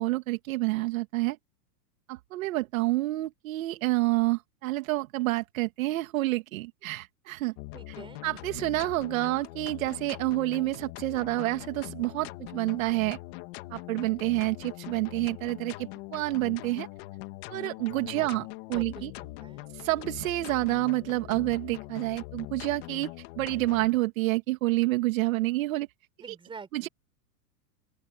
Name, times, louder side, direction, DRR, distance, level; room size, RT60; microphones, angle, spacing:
voice 1, 0.0-1.4 2.1-7.5 8.2-13.2 13.7-16.9 17.5-18.4 18.7-19.1 19.7-25.9 26.7-26.9, right 19 dB, 55° right, 2.2 m, -28 dB
sound 1, 7.6-23.9, left 20 dB, 40° left, 2.1 m, -42 dB
voice 2, 7.7-8.2 17.9-18.3 18.7-19.7 26.2-26.9, right 5 dB, 10° right, 5.1 m, -46 dB
open air
supercardioid pair, 160°, 49 cm